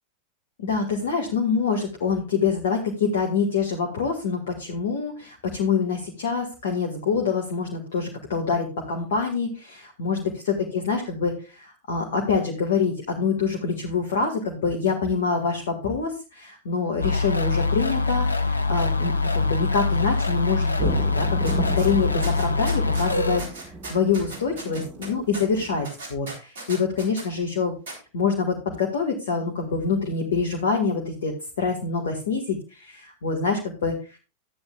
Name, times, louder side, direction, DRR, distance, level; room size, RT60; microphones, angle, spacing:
voice 1, 0.6-27.7 28.1-34.2, left 5 dB, 60° left, 1 dB, 1.9 m, -26 dB
sound 1, 17.0-23.4, left 3 dB, 80° left, 0.8 m, -24 dB
sound 2, 20.8-25.8, right 1 dB, 20° right, 1.6 m, -34 dB
sound 3, 21.5-21.9 22.2-23.1 23.4-27.3 27.9-28.0, right 2 dB, 60° right, 3.7 m, -37 dB
13.5 x 9.6 x 2.4 m, 0.31 s
figure-of-eight pair, 90°, 0 cm